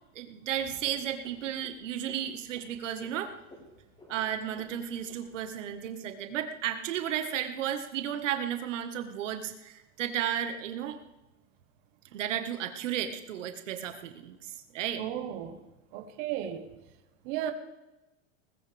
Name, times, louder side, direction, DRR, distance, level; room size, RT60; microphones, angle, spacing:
voice 1, 0.1-3.3 4.1-11.0 12.1-15.0, right 10 dB, 85° right, 7 dB, 1.7 m, -33 dB
Frog, 0.6-5.8, left 1 dB, 15° left, 6.4 m, -55 dB
voice 2, 15.0-15.6 15.9-16.7 17.2-17.5, right 11 dB, 45° right, 7 dB, 1.5 m, -34 dB
20.0 x 15.0 x 3.5 m, 1.0 s
supercardioid pair, 155°, 36 cm